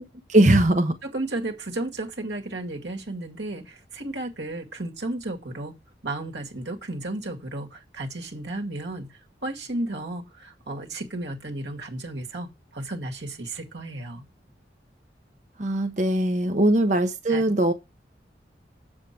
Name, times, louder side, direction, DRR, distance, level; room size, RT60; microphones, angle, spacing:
voice 1, 0.3-1.0 15.6-17.7, right 1 dB, 40° right, 1.0 m, -20 dB
voice 2, 1.0-5.7 6.0-14.2 17.3-17.4, right 2 dB, 80° right, 2.1 m, -33 dB
8.3 x 7.3 x 4.6 m
head